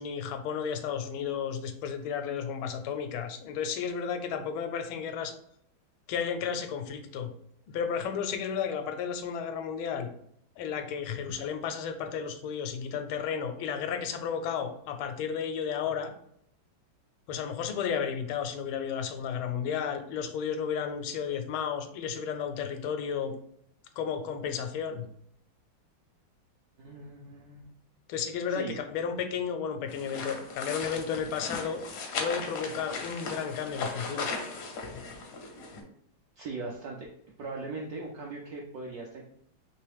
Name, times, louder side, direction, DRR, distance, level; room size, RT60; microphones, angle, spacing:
voice 1, 0.0-5.3 6.1-7.3 7.7-10.1 10.6-16.1 17.3-23.3 24.0-25.1 28.1-31.9 32.2-34.3, left 7 dB, 85° left, 8 dB, 1.4 m, -33 dB
voice 2, 26.8-27.7 28.5-28.8 36.4-37.1 37.4-39.2, right 3 dB, 75° right, -1 dB, 0.8 m, -39 dB
sound 1, 29.9-35.8, left 4 dB, 70° left, 0.8 m, -37 dB
3.4 x 3.1 x 3.3 m, 0.70 s
omnidirectional pair, 2.2 m